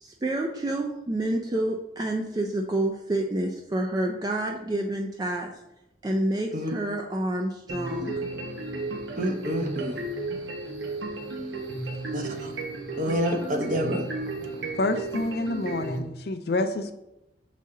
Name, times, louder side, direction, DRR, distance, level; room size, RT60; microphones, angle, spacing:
voice 1, 0.0-5.5 6.0-8.1, right 1 dB, 20° right, 2 dB, 0.4 m, -28 dB
sound 1, 7.7-16.0, right 2 dB, 90° right, 1.1 m, -34 dB
voice 2, 9.2-10.0 12.1-12.5 13.0-14.0, equal, 45° right, 4 dB, 0.8 m, -28 dB
voice 3, 14.8-16.9, left 2 dB, 60° left, 9 dB, 0.5 m, -28 dB
6.4 x 4.1 x 3.7 m, 0.91 s
head